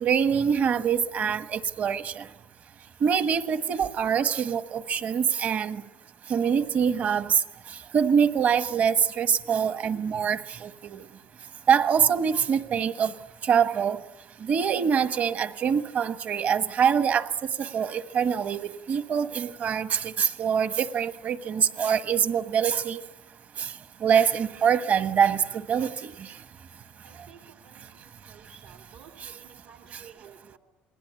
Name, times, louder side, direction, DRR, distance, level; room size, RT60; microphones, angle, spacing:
voice 1, 0.0-2.3 3.0-5.8 6.3-7.4 7.9-11.0 11.7-13.1 13.4-14.0 14.4-23.0 23.6-23.7 24.0-26.3, right 7 dB, 45° right, 1.4 m, -24 dB
voice 2, 27.0-30.6, right 7 dB, 80° right, 3.0 m, -53 dB
28.0 x 20.5 x 9.6 m
cardioid pair, 105°, 4 cm